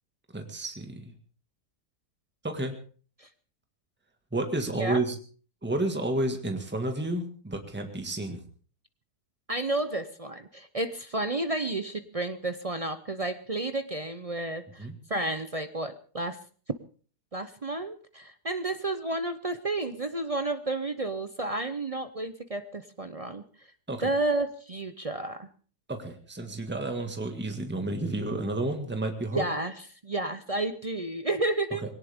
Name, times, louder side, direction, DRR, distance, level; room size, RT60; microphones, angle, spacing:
voice 1, 0.3-1.1 2.4-2.7 4.3-5.2 5.6-8.4 14.8-15.0 23.9-24.1 25.9-29.5, right 2 dB, 5° right, 5 dB, 1.8 m, -31 dB
voice 2, 9.5-16.4 17.3-23.4 24.0-25.5 29.3-31.8, right 2 dB, 40° right, 10 dB, 0.5 m, -31 dB
20.5 x 18.0 x 3.6 m, 0.42 s
omnidirectional pair, 1.7 m